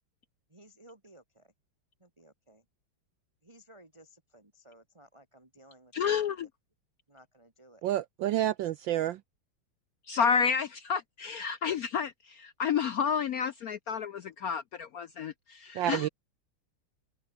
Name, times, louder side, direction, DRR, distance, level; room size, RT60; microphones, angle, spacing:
voice 1, 0.5-1.5 2.0-2.7 3.4-6.4 7.1-7.8, right 1 dB, 15° right, 2.5 m, -57 dB
voice 2, 5.9-6.5 10.1-16.1, left 7 dB, 80° left, 0.8 m, -30 dB
voice 3, 7.8-9.2 15.7-16.1, right 13 dB, 70° right, 1.2 m, -29 dB
open air
omnidirectional pair, 2.4 m